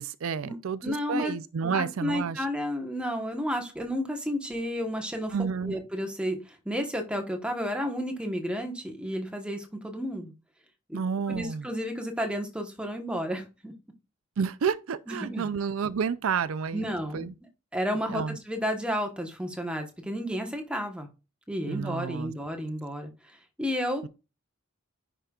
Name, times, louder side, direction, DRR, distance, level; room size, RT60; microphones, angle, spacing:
voice 1, 0.0-2.4 5.3-5.8 10.9-11.7 14.4-16.9 17.1-17.3 18.1-18.4 21.7-22.3 24.0-24.1, right 6 dB, 70° right, 0.4 m, -30 dB
voice 2, 0.8-1.3 1.6-5.3 5.6-10.3 10.9-11.0 11.3-13.7 15.1-15.5 16.7-17.3 17.7-21.1 21.5-24.0, equal, 5° right, 1.1 m, -32 dB
10.0 x 5.1 x 2.4 m
head